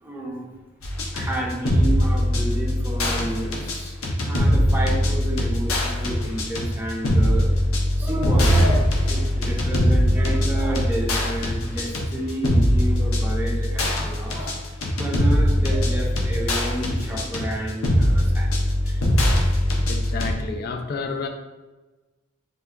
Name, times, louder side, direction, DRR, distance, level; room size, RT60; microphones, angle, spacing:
voice 1, 0.0-0.5 1.1-4.0 4.2-7.5 8.0-14.6 15.0-18.5 18.8-19.0, right 1 dB, 10° right, -3 dB, 0.6 m, -30 dB
sound 1, 0.8-20.3, equal, 85° left, 0.7 m, -21 dB
voice 2, 19.9-21.3, left 4 dB, 50° left, 5 dB, 0.4 m, -30 dB
3.5 x 2.2 x 3.6 m, 1.2 s
head